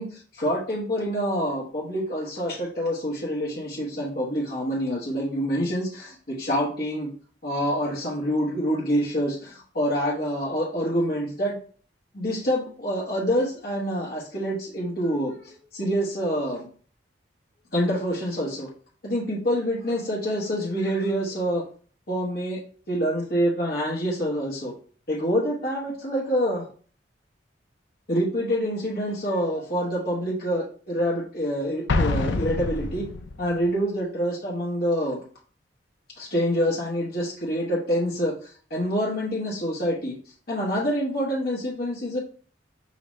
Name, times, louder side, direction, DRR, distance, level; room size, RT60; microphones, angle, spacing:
voice 1, 0.0-7.1 7.4-11.6 12.1-16.7 17.7-18.7 19.0-21.6 22.1-22.6 22.9-24.7 25.1-26.7 28.1-33.1 33.4-35.2 36.2-40.2 40.5-42.2, equal, 55° left, -5 dB, 1.2 m, -26 dB
Explosion, 31.9-33.6, left 3 dB, 75° left, 0.5 m, -26 dB
5.0 x 2.9 x 3.1 m, 0.43 s
head